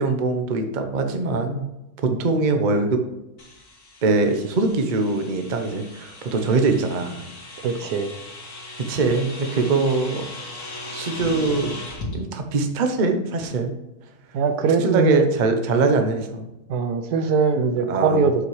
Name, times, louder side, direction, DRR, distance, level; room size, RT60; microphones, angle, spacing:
voice 1, 0.0-1.6 2.0-3.0 4.0-7.2 8.8-10.2 10.9-11.7 12.1-13.7 14.8-16.4 17.9-18.2, right 3 dB, 40° right, 5 dB, 0.7 m, -22 dB
sound 1, 3.4-12.1, left 1 dB, 80° left, 2.5 m, -37 dB
voice 2, 7.6-8.1 14.3-15.3 16.7-18.5, right 4 dB, 70° right, 9 dB, 1.2 m, -21 dB
7.8 x 5.8 x 3.2 m, 0.95 s
omnidirectional pair, 1.8 m